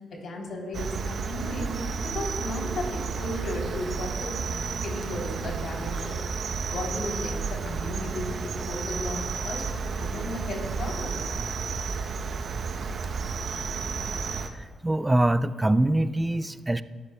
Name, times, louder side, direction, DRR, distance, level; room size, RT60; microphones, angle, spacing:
voice 1, 0.1-1.7 2.0-6.2 6.7-11.2, left 1 dB, 60° left, 0 dB, 3.3 m, -35 dB
Cricket, 0.7-14.5, right 5 dB, 55° right, 0.8 m, -32 dB
voice 2, 14.6-16.8, right 1 dB, 15° right, 13 dB, 0.5 m, -24 dB
19.5 x 13.0 x 2.3 m, 1.5 s
hypercardioid pair, 45°, 0 cm